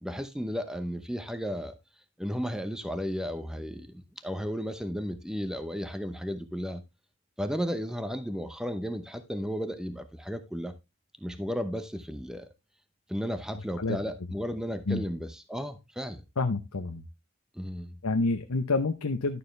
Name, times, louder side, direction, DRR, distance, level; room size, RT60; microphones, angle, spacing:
voice 1, 0.0-1.7 2.2-6.8 7.4-10.7 11.2-12.5 13.1-16.2 17.5-18.0, equal, 5° right, 0.8 m, -34 dB
voice 2, 16.4-17.0 18.0-19.4, left 3 dB, 90° left, 0.9 m, -28 dB
11.5 x 6.9 x 3.3 m
head